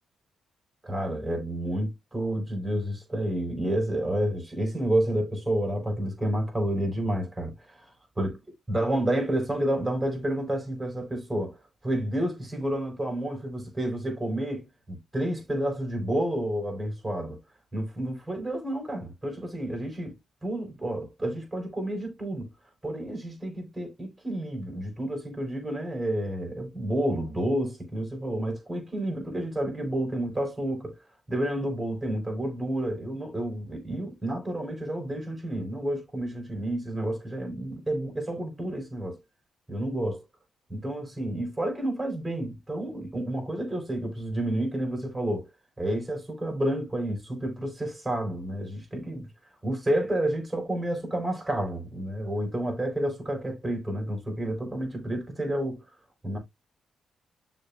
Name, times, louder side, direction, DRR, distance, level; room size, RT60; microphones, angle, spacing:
voice 1, 0.8-7.7 8.2-8.3 8.7-11.6 11.8-17.4 17.7-20.2 20.4-22.5 22.8-31.0 31.3-39.2 39.7-40.2 40.7-45.5 45.8-49.3 49.6-55.8 56.2-56.4, right 1 dB, 15° right, 4.7 m, -30 dB
12.0 x 4.2 x 2.3 m
hypercardioid pair, 45°, 0 cm